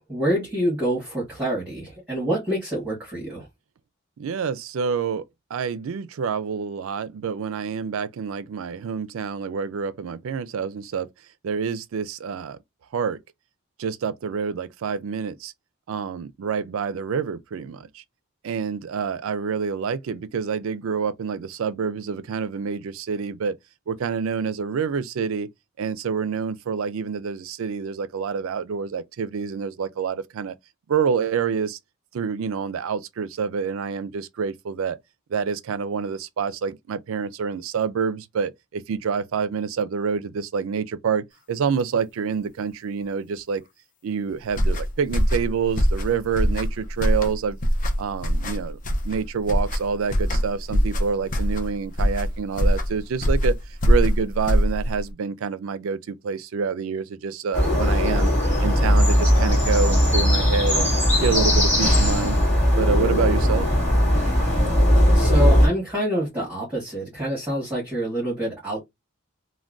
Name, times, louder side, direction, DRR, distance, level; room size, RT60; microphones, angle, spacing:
voice 1, 0.1-3.4 65.1-68.8, equal, 10° right, 1.6 m, -26 dB
voice 2, 4.2-5.2 5.5-11.1 11.4-12.6 12.9-13.2 13.8-15.5 15.9-18.0 18.4-23.6 23.9-25.5 25.8-30.5 30.9-31.8 32.1-35.0 35.3-43.6 44.0-47.6 48.0-48.8 49.0-53.6 53.9-58.3 58.6-60.9 61.2-62.4 62.8-63.7, right 6 dB, 70° right, 0.4 m, -27 dB
sound 1, 44.5-55.1, equal, 35° left, 0.5 m, -23 dB
sound 2, 57.5-65.7, equal, 10° left, 1.8 m, -18 dB
3.4 x 2.2 x 2.4 m
head